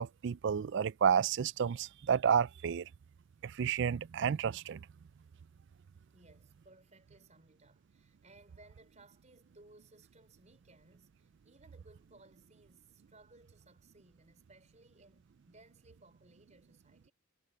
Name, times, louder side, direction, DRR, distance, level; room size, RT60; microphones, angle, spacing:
voice 1, 0.0-2.9 3.4-4.8, right 7 dB, 55° right, 0.3 m, -30 dB
voice 2, 6.1-17.1, right 2 dB, 30° right, 5.6 m, -62 dB
head